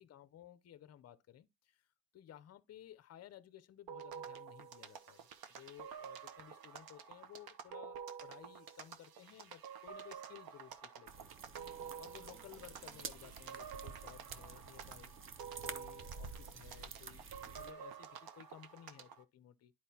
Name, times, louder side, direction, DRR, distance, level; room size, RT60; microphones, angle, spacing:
voice 1, 0.0-1.9 2.1-11.3 12.0-15.1 15.6-19.7, left 11 dB, 35° left, 0.6 m, -57 dB
sound 1, 3.9-19.2, right 7 dB, 55° right, 1.0 m, -50 dB
sound 2, 11.1-17.7, right 5 dB, 30° right, 0.6 m, -50 dB
11.0 x 4.6 x 2.8 m
cardioid pair, 160°, 43 cm